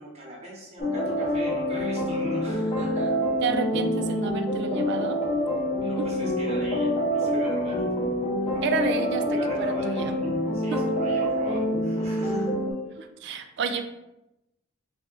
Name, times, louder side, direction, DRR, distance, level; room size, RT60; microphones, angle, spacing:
voice 1, 0.0-3.1 5.9-7.8 8.5-8.8 9.3-12.5, right 1 dB, 30° right, -3 dB, 0.9 m, -41 dB
sound 1, 0.8-12.7, equal, 30° left, 0.7 m, -26 dB
voice 2, 3.4-5.2 6.0-6.1 8.6-10.2 10.7-10.8 13.0-13.9, right 5 dB, 55° right, 8 dB, 0.3 m, -30 dB
3.5 x 2.2 x 3.7 m, 0.93 s
head